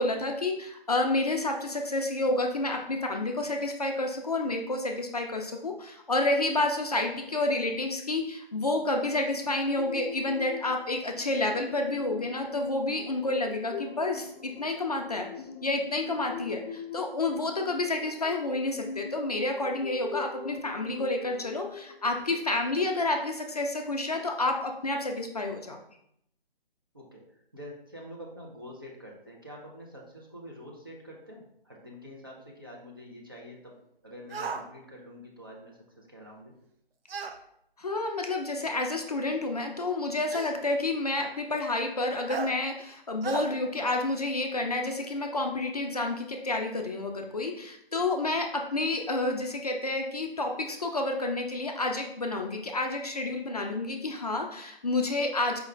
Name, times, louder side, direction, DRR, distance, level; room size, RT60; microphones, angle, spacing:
voice 1, 0.0-15.3 15.6-25.8 37.8-55.6, left 2 dB, 40° left, 3 dB, 0.4 m, -29 dB
sound 1, 9.0-23.4, left 5 dB, 85° left, 0.6 m, -42 dB
voice 2, 27.5-33.8 34.0-36.5, equal, 25° right, -3 dB, 0.4 m, -46 dB
sound 2, 34.3-34.6 37.1-37.4 38.6-38.7 40.3-40.6 42.3-42.5 43.2-43.5, right 5 dB, 70° right, 0.5 m, -35 dB
4.6 x 2.3 x 3.1 m, 0.74 s
figure-of-eight pair, 160°, 30 cm